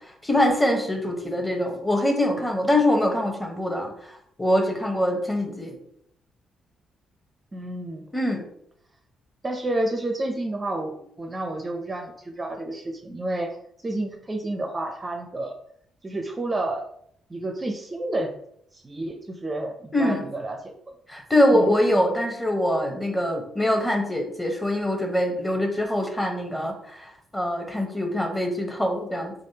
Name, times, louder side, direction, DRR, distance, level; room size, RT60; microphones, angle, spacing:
voice 1, 0.2-5.8 8.1-8.4 19.9-20.2 21.1-29.3, left 1 dB, 10° left, 3 dB, 0.9 m, -24 dB
voice 2, 7.5-8.1 9.4-13.6 13.8-15.6 16.0-16.9 17.3-18.3 18.7-20.7 21.5-21.7, right 1 dB, 25° right, 3 dB, 0.5 m, -30 dB
3.8 x 3.4 x 2.8 m, 0.70 s
cardioid pair, 90°, 0 cm